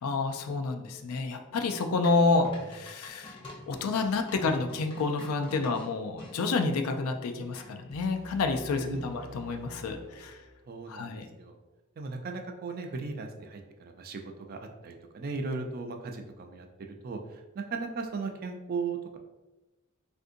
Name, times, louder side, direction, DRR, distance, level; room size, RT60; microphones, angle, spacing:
voice 1, 0.0-3.4 3.7-10.4 10.9-11.3, left 3 dB, 90° left, 6 dB, 0.4 m, -29 dB
sound 1, 2.0-6.3 7.5-8.0, left 1 dB, 25° left, 0.6 m, -46 dB
sound 2, 7.9-10.9, left 3 dB, 65° right, 0.7 m, -49 dB
voice 2, 8.7-9.0 10.7-11.6 12.0-14.2 14.5-19.2, right 4 dB, 45° right, 4 dB, 0.4 m, -37 dB
3.6 x 2.5 x 2.5 m, 1.1 s
head